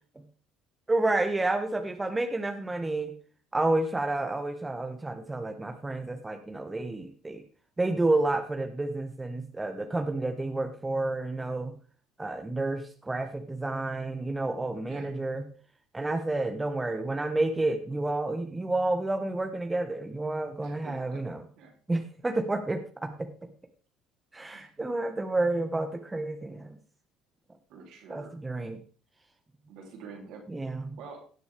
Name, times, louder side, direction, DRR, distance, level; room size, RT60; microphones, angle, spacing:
voice 1, 0.9-3.1 3.5-7.4 7.8-11.7 12.2-15.4 15.9-21.4 21.9-23.3 24.3-26.8 28.1-28.8 30.5-30.9, right 2 dB, 15° right, 6 dB, 1.3 m, -30 dB
voice 2, 20.6-21.3 21.6-21.7 24.5-24.9 27.7-28.4 29.7-31.2, right 5 dB, 65° right, 1 dB, 3.5 m, -47 dB
18.0 x 6.8 x 3.5 m, 0.40 s
hypercardioid pair, 60°, 0 cm